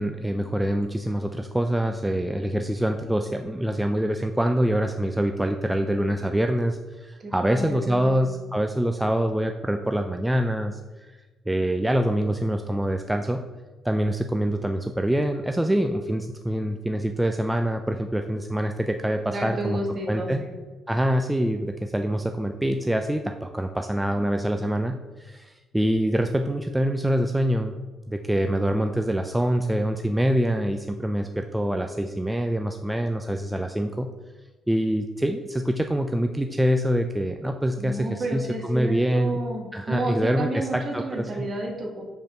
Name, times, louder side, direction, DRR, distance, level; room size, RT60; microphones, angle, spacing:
voice 1, 0.0-11.2 11.5-13.4 13.8-19.8 20.1-20.4 20.9-27.7 28.1-34.1 34.7-39.4 39.7-41.5, equal, 10° right, 5 dB, 0.4 m, -25 dB
voice 2, 7.2-8.3 19.3-20.5 37.8-42.0, right 1 dB, 40° right, 1 dB, 1.7 m, -31 dB
5.1 x 4.6 x 5.8 m, 1.3 s
cardioid pair, 90°, 0 cm